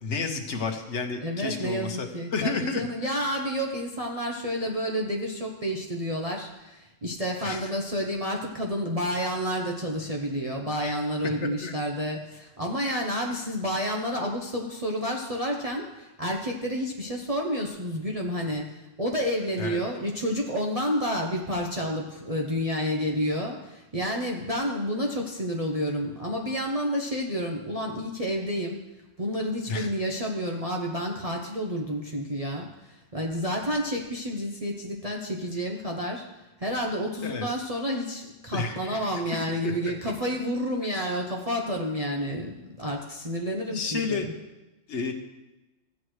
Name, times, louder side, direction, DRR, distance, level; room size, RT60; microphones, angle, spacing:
voice 1, 0.0-2.8 7.4-7.7 10.7-10.9 11.6-11.7 12.8-12.9 19.6-19.8 29.7-29.9 37.2-37.5 38.5-39.2 39.6-39.7 43.7-44.3 44.9-45.1, left 4 dB, 65° left, 5 dB, 1.3 m, -31 dB
voice 2, 1.2-28.8 29.2-36.2 36.6-44.2, equal, 35° right, -1 dB, 0.8 m, -30 dB
14.5 x 8.3 x 3.1 m, 1.0 s
omnidirectional pair, 1.3 m